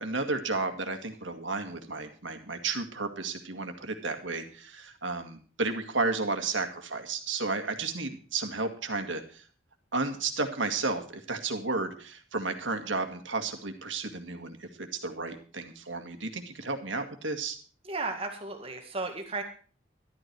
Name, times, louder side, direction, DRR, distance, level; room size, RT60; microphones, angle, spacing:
voice 1, 0.0-9.4 9.9-17.6, right 3 dB, 85° right, 6 dB, 2.0 m, -33 dB
voice 2, 17.8-19.4, right 3 dB, 30° right, 4 dB, 2.0 m, -34 dB
12.5 x 12.5 x 4.7 m, 0.41 s
head